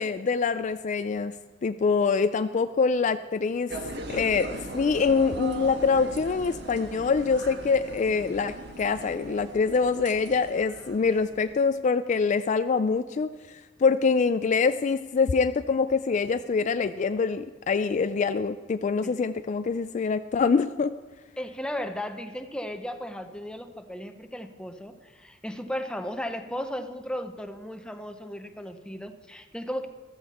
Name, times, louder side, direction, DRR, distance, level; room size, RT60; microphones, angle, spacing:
voice 1, 0.0-1.3 1.6-3.7 4.1-4.5 4.7-13.3 13.8-20.9, left 5 dB, 40° left, 11 dB, 0.3 m, -25 dB
sound 1, 3.7-11.5, right 2 dB, 65° right, 1.4 m, -39 dB
voice 2, 21.4-29.9, equal, 5° left, 7 dB, 0.8 m, -35 dB
14.5 x 14.0 x 4.3 m, 1.2 s
head